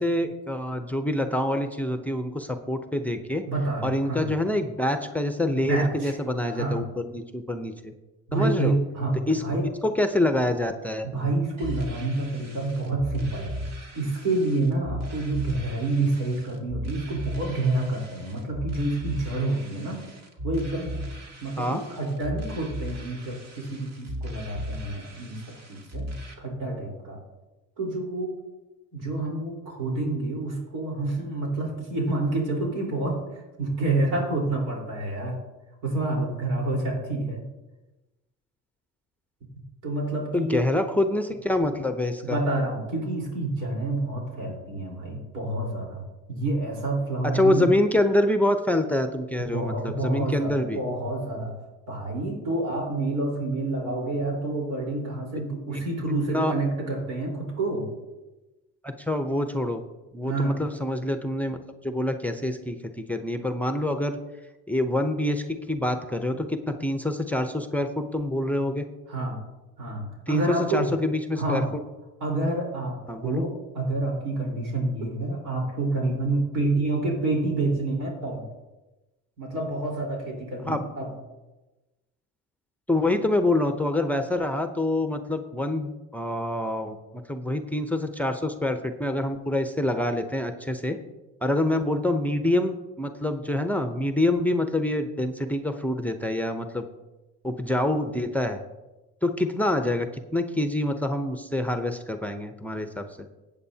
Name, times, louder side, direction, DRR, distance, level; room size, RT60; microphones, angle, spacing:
voice 1, 0.0-3.4 3.8-7.9 8.3-8.7 9.3-9.4 9.8-11.1 21.6-21.8 40.3-42.4 47.3-50.8 56.3-56.5 58.8-59.8 60.1-61.6 61.8-64.2 64.7-68.8 70.3-71.6 73.1-73.5 80.7-80.8 82.9-87.0 87.3-91.0 91.4-96.8 97.4-98.6 99.2-103.3, left 1 dB, 5° left, 6 dB, 0.7 m, -26 dB
voice 2, 3.5-4.3 5.7-6.1 6.5-6.8 8.3-9.6 11.0-13.6 13.9-20.0 20.4-21.0 21.4-26.1 26.4-27.2 27.8-28.3 28.9-33.1 33.6-35.4 35.8-37.4 39.8-40.7 42.2-46.0 46.3-47.7 49.4-51.5 51.9-57.9 60.3-60.6 69.1-69.4 69.8-70.9 71.3-71.7 72.2-78.4 79.4-81.1, right 2 dB, 80° right, -1 dB, 4.2 m, -28 dB
sound 1, 11.6-26.3, equal, 55° right, 2.2 m, -37 dB
15.5 x 8.6 x 2.8 m, 1.1 s
cardioid pair, 100°, 31 cm